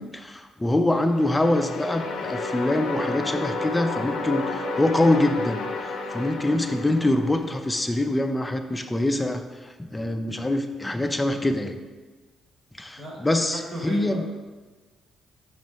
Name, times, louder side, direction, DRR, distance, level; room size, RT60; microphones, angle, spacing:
voice 1, 0.0-9.4 9.8-11.8 12.8-14.2, left 1 dB, 10° left, 6 dB, 0.5 m, -24 dB
sound 1, 1.0-8.0, left 3 dB, 75° left, 0.6 m, -31 dB
voice 2, 13.5-14.3, right 1 dB, 50° right, -2 dB, 1.8 m, -35 dB
6.0 x 3.2 x 5.0 m, 1.3 s
cardioid pair, 90°, 0 cm